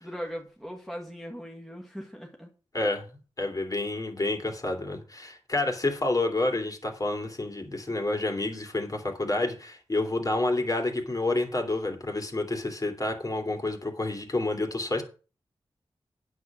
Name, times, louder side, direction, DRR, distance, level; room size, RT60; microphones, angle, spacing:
voice 1, 0.0-2.5, equal, ahead, 0 dB, 2.0 m, -39 dB
voice 2, 2.7-3.0 3.4-15.0, left 2 dB, 35° left, 4 dB, 3.2 m, -29 dB
9.3 x 7.6 x 6.2 m, 0.35 s
wide cardioid pair, 70°, 10 cm